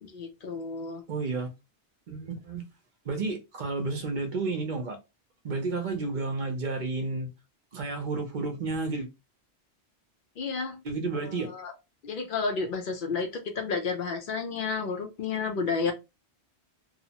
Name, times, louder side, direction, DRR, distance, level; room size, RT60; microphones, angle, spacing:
voice 1, 0.0-1.0 10.4-10.8 11.2-11.7 12.0-15.9, left 4 dB, 60° left, 0.6 m, -31 dB
voice 2, 1.1-1.5 2.1-2.6 3.0-5.0 5.4-7.3 7.7-9.1 10.8-11.5, right 3 dB, 50° right, 0.7 m, -31 dB
2.8 x 2.0 x 2.7 m
omnidirectional pair, 1.1 m